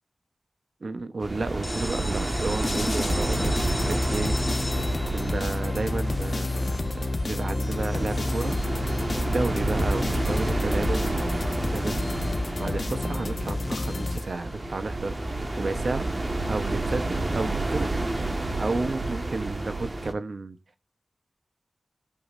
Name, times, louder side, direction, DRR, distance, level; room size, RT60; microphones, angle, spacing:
voice 1, 0.8-4.6 5.1-8.6 9.3-11.3 11.6-12.3 12.6-15.2 15.6-17.9 18.6-20.6, right 3 dB, 70° right, 1.1 m, -32 dB
sound 1, 1.2-20.1, right 2 dB, 40° right, 1.8 m, -30 dB
sound 2, 1.6-7.3, left 2 dB, 20° left, 2.7 m, -38 dB
sound 3, 2.6-14.7, left 2 dB, 50° left, 1.2 m, -30 dB
21.0 x 8.0 x 2.7 m
wide cardioid pair, 75°, 0 cm